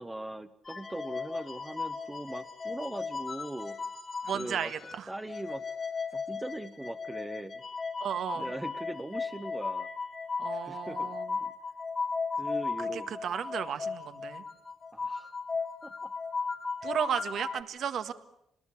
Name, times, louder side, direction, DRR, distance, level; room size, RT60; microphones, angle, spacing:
voice 1, 0.0-3.8 4.3-4.7 5.1-5.6 6.1-7.6 8.3-9.9 10.5-11.5 12.4-13.1 14.9-15.3 15.8-16.1, right 1 dB, 15° right, 6 dB, 1.1 m, -40 dB
Fluting stars, 0.7-5.0 5.3-17.6, left 4 dB, 40° left, 2.0 m, -36 dB
voice 2, 4.2-5.1 8.0-8.5 10.4-11.4 12.8-14.4 16.8-18.1, right 8 dB, 70° right, 10 dB, 1.7 m, -34 dB
26.0 x 20.0 x 8.5 m, 0.79 s
cardioid pair, 80°, 0 cm